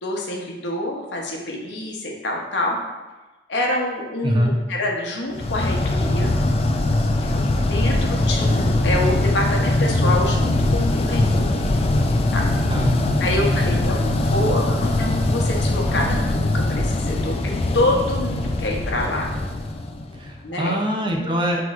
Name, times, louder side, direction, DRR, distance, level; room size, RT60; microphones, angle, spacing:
voice 1, 0.0-2.8 3.5-6.3 7.6-11.5 12.3-12.5 13.2-17.4 17.7-19.3 20.4-20.8 21.2-21.4, left 1 dB, 85° left, 0 dB, 0.7 m, -26 dB
voice 2, 4.2-4.5 12.7-13.8 20.2-21.6, equal, 30° right, 1 dB, 0.5 m, -23 dB
sound 1, 5.4-20.4, left 2 dB, 35° left, 0.3 m, -21 dB
5.9 x 2.9 x 2.4 m, 1.2 s
head